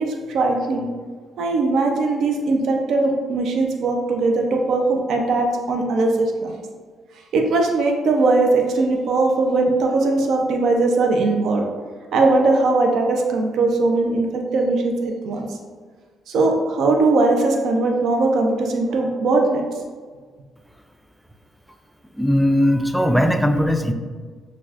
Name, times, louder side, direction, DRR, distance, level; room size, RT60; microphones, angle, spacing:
voice 1, 0.1-0.9 1.4-6.5 7.3-11.6 12.1-15.6 16.3-19.6, right 3 dB, 75° right, 2 dB, 0.5 m, -20 dB
voice 2, 22.2-23.9, equal, ahead, 6 dB, 0.3 m, -18 dB
5.8 x 2.3 x 2.4 m, 1.5 s
cardioid pair, 90°, 0 cm